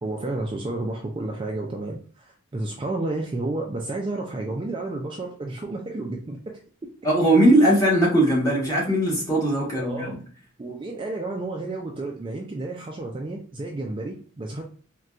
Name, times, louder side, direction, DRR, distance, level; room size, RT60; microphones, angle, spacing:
voice 1, 0.0-6.9 9.8-10.1 10.6-14.6, right 2 dB, 25° right, 1 dB, 0.3 m, -31 dB
voice 2, 7.0-10.2, right 1 dB, 15° left, -5 dB, 1.2 m, -19 dB
3.8 x 2.2 x 2.3 m, 0.44 s
head